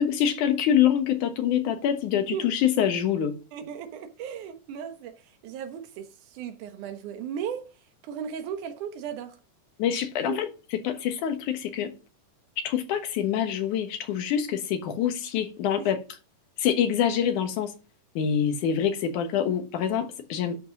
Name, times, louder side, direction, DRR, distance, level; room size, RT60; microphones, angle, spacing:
voice 1, 0.0-3.3 9.8-10.5 10.8-11.9 12.6-16.0 16.6-17.7 18.2-20.6, left 9 dB, 70° left, 2.7 m, -25 dB
voice 2, 3.5-7.7 8.0-9.4 10.3-10.4 15.8-15.9, right 8 dB, 75° right, 2.7 m, -36 dB
11.0 x 5.4 x 6.0 m
omnidirectional pair, 3.7 m